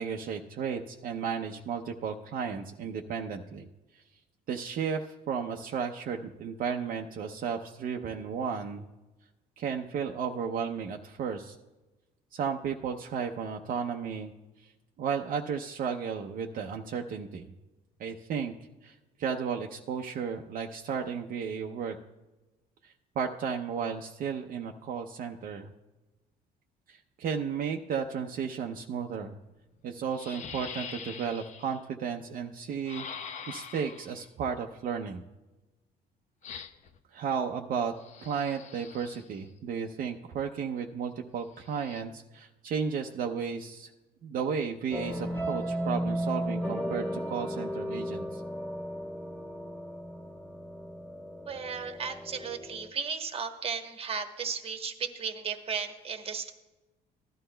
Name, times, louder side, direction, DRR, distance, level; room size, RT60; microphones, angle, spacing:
voice 1, 0.0-3.7 4.5-8.8 9.6-11.6 12.3-14.3 15.0-17.5 18.0-18.5 18.8-21.9 22.8-25.7 26.9-29.3 29.8-33.1 33.5-35.2 37.1-37.9 38.2-43.9 44.2-48.4, right 6 dB, 55° right, 2 dB, 0.6 m, -34 dB
sound 1, 29.4-29.5 30.1-31.8 32.9-34.2 36.4-37.0 38.0-39.4 41.6-42.0, left 7 dB, 45° left, 0.6 m, -44 dB
sound 2, 44.9-52.9, equal, 10° left, 1.5 m, -35 dB
voice 2, 51.5-56.5, right 6 dB, 35° right, 7 dB, 1.0 m, -35 dB
15.5 x 11.5 x 2.2 m, 1.1 s
cardioid pair, 110°, 17 cm